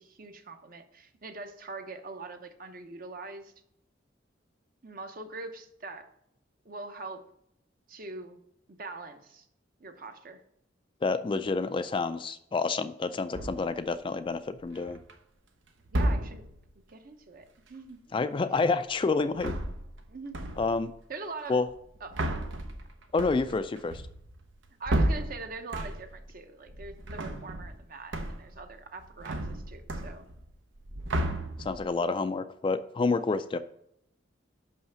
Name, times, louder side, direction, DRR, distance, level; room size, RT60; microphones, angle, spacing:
voice 1, 0.0-3.5 4.8-6.1 6.6-7.3 7.9-8.4 8.7-9.5 9.8-10.4 15.9-16.4 16.9-18.2 20.1-20.3 21.1-21.6 22.0-22.1 23.5-23.6 24.8-30.3, right 3 dB, 50° right, 7 dB, 0.8 m, -43 dB
voice 2, 11.0-15.0 18.1-19.5 20.6-20.9 21.5-21.7 23.1-24.0 31.6-33.6, left 4 dB, 25° left, 11 dB, 0.3 m, -28 dB
sound 1, 13.3-13.8 14.6-15.1 15.9-16.6 19.2-20.1 20.3-20.9 21.7-26.3 26.6-27.8 28.1-28.6 28.9-30.5 30.8-31.9, right 1 dB, 85° right, 0.8 m, -32 dB
5.6 x 5.6 x 5.6 m, 0.74 s
head